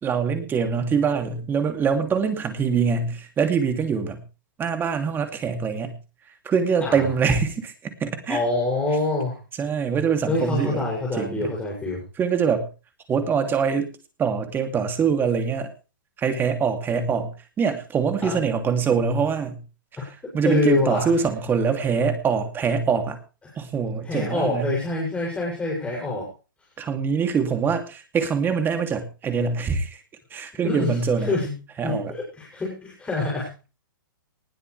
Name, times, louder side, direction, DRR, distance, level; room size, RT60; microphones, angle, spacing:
voice 1, 0.0-4.2 4.6-5.9 6.4-7.7 8.0-8.4 9.6-11.5 12.2-12.7 13.1-13.9 14.2-15.7 16.2-19.6 20.0-23.2 23.6-24.7 26.8-30.0 30.3-31.3 31.8-32.1, right 6 dB, 20° right, 6 dB, 3.0 m, -24 dB
voice 2, 8.3-9.4 10.3-12.0 18.2-18.4 20.0-20.1 20.4-21.1 24.0-26.3 30.6-30.9 31.2-31.5 31.8-33.5, left 2 dB, 10° left, -3 dB, 7.5 m, -26 dB
20.0 x 12.0 x 3.5 m, 0.34 s
hypercardioid pair, 125°, 11 cm